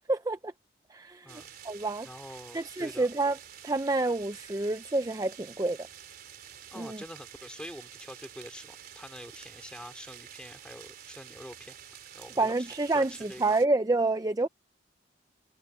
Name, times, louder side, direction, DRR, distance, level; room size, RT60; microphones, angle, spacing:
voice 1, 0.1-0.5 0.9-2.1 2.5-3.4 3.6-5.8 6.8-7.0 12.4-14.5, right 2 dB, 20° right, 0.5 m, -28 dB
sound 1, 1.3-13.7, right 9 dB, 50° right, 3.9 m, -49 dB
voice 2, 2.0-3.1 6.7-11.8 12.1-13.6, equal, 5° left, 3.6 m, -46 dB
head